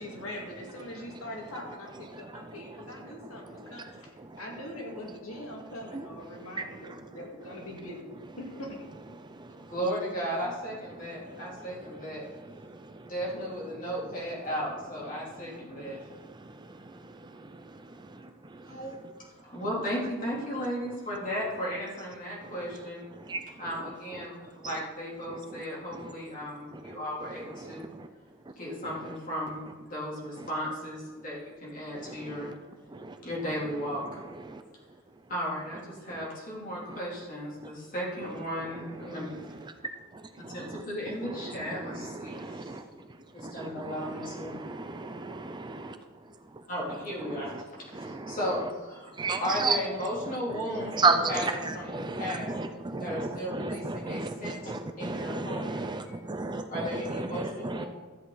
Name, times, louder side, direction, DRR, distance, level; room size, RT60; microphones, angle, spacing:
voice 1, 0.0-4.1 4.4-8.8, left 1 dB, 80° left, 0 dB, 2.2 m, -42 dB
voice 2, 9.6-12.2 13.0-16.0 18.7-19.0 19.4-23.0 23.6-27.8 28.6-32.5 33.2-34.0 35.3-39.5 40.4-42.8 43.3-44.6 46.7-47.5 47.8-49.1 49.4-52.5 53.0-56.2 56.7-57.9, equal, 40° left, -5 dB, 3.3 m, -35 dB
voice 3, 41.7-42.8 43.4-43.9 44.4-45.9 47.9-48.4 49.2-49.8 50.8-51.5 51.9-57.8, right 3 dB, 20° right, 7 dB, 0.5 m, -32 dB
13.0 x 8.1 x 4.1 m, 1.3 s
head